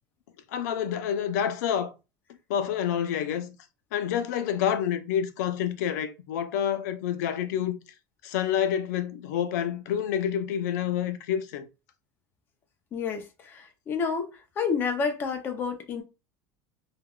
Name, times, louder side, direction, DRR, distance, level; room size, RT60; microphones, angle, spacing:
voice 1, 0.5-1.9 2.5-3.6 3.9-7.8 8.2-11.7, left 9 dB, 85° left, 0.5 m, -28 dB
voice 2, 12.9-16.0, left 5 dB, 25° left, 0.5 m, -30 dB
3.3 x 2.2 x 2.2 m
cardioid pair, 170°, 9 cm